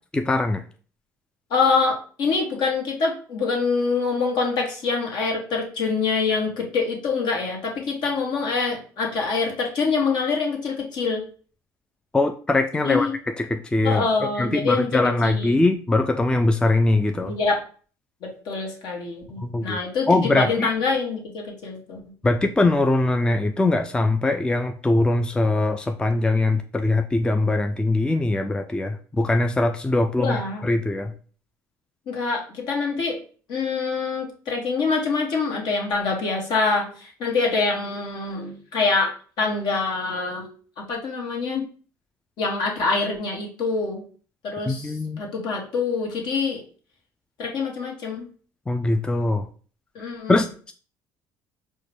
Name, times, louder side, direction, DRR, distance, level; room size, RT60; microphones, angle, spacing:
voice 1, 0.1-0.6 12.1-14.1 14.4-17.4 19.4-19.8 20.1-20.7 22.2-31.1 44.7-45.2 48.7-49.5 50.3-50.7, left 2 dB, 10° left, 6 dB, 0.3 m, -22 dB
voice 2, 1.5-11.2 12.8-13.1 13.8-15.6 17.2-17.6 18.2-22.0 30.2-30.6 32.1-33.2 33.5-39.1 39.4-40.5 40.8-41.6 42.4-44.0 44.4-46.6 47.4-48.3 49.9-50.4, left 4 dB, 65° left, 0 dB, 1.2 m, -25 dB
4.5 x 2.2 x 3.2 m, 0.41 s
supercardioid pair, 75°, 8 cm